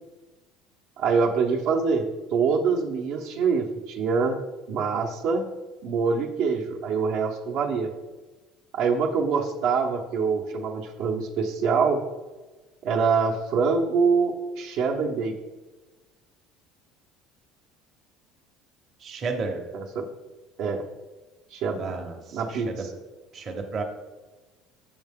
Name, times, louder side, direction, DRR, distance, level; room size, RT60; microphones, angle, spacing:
voice 1, 1.0-2.1 2.3-4.4 4.7-5.4 5.8-7.9 8.7-12.0 12.8-15.3 19.7-20.0 20.6-20.8 21.5-21.9 22.3-22.9, right 5 dB, 55° right, 1 dB, 0.8 m, -25 dB
voice 2, 19.0-19.6 21.7-22.9 23.3-23.8, right 4 dB, 30° right, 2 dB, 0.9 m, -32 dB
7.4 x 7.3 x 3.6 m, 1.2 s
cardioid pair, 170°, 0 cm